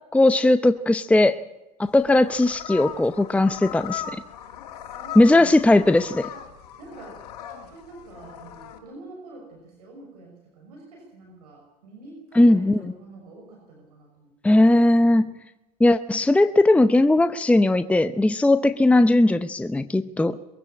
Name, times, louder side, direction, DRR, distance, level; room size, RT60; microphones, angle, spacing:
voice 1, 0.1-1.4 1.8-4.0 5.2-6.3 12.4-12.9 14.4-15.3 15.8-20.4, left 2 dB, 5° left, 11 dB, 0.7 m, -18 dB
sound 1, 1.8-8.8, left 10 dB, 80° left, 2.7 m, -38 dB
voice 2, 4.9-5.7 6.8-7.2 7.7-14.3 14.6-14.8, right 2 dB, 75° right, 1 dB, 6.1 m, -46 dB
22.0 x 16.0 x 8.7 m, 0.99 s
hypercardioid pair, 80°, 20 cm